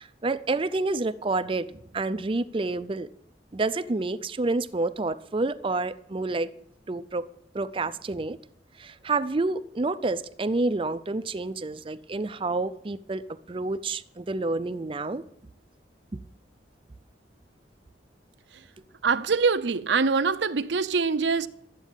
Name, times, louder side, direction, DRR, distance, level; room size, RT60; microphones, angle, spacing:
voice 1, 0.0-3.1 3.5-6.5 6.9-7.3 7.5-8.4 8.8-15.2, right 3 dB, 30° right, 0.5 m, -29 dB
voice 2, 19.0-21.5, right 5 dB, 75° right, 0.7 m, -24 dB
13.0 x 8.3 x 9.0 m
head